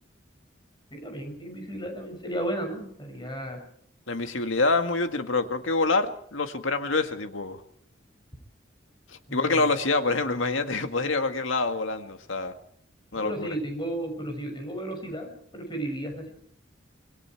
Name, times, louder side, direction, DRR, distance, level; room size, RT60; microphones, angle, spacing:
voice 1, 0.9-3.6 9.3-9.6 13.1-16.3, right 1 dB, 25° left, 4 dB, 6.5 m, -34 dB
voice 2, 4.1-7.6 9.1-12.5 13.1-13.5, left 3 dB, 85° left, 7 dB, 1.9 m, -26 dB
26.5 x 22.0 x 4.6 m, 0.65 s
head